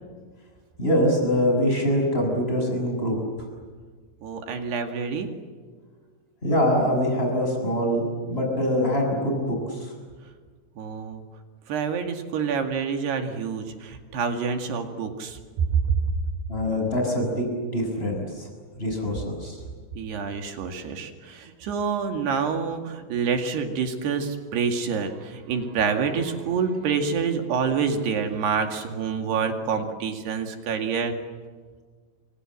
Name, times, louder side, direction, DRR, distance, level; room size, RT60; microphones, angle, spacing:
voice 1, 0.8-3.2 6.4-9.9 16.5-17.5 17.7-18.5 18.8-19.6, equal, 10° left, 2 dB, 7.0 m, -24 dB
voice 2, 4.2-5.3 10.8-11.2 11.7-15.4 15.7-16.0 19.9-31.2, right 6 dB, 60° right, 5 dB, 3.9 m, -27 dB
29.5 x 25.5 x 7.8 m, 1.5 s
omnidirectional pair, 5.8 m